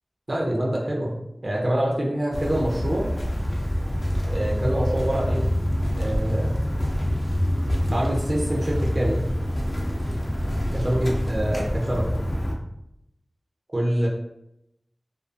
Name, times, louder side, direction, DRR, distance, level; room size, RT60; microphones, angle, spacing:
voice 1, 0.3-3.1 4.3-5.5 6.0-6.6 7.8-9.2 10.7-12.2 13.7-14.1, right 1 dB, 50° right, -2 dB, 0.5 m, -25 dB
sound 1, 2.3-12.5, equal, 45° left, 0.5 m, -26 dB
2.3 x 2.3 x 2.5 m, 0.82 s
wide cardioid pair, 50°, 0 cm